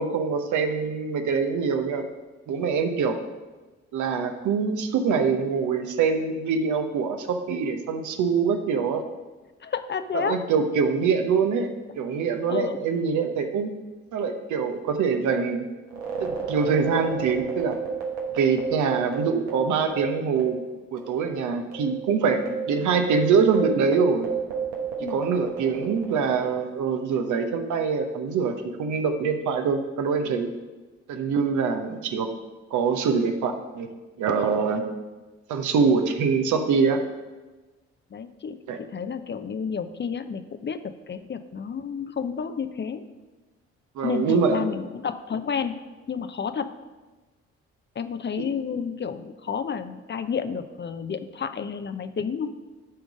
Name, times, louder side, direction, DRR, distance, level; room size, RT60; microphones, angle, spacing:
voice 1, 0.0-2.0 2.5-3.2 3.9-9.0 10.1-11.7 12.0-13.7 14.1-15.6 16.2-17.8 18.3-20.6 20.9-22.4 22.7-24.3 25.1-28.5 28.8-30.5 31.1-32.3 32.7-33.9 34.2-34.8 35.5-37.0 38.7-38.8 44.0-44.6, right 5 dB, 65° right, 6 dB, 0.9 m, -24 dB
voice 2, 9.6-10.4 12.5-12.8 22.5-22.6 25.0-25.2 38.1-38.6 38.9-40.8 41.1-43.0 44.0-45.8 46.1-46.7 48.0-52.5, left 6 dB, 35° left, 10 dB, 0.6 m, -30 dB
sound 1, 15.9-20.7 21.0-21.1 21.7-26.5, right 6 dB, 85° right, 1.2 m, -32 dB
11.5 x 3.8 x 5.1 m, 1.2 s
hypercardioid pair, 45°, 32 cm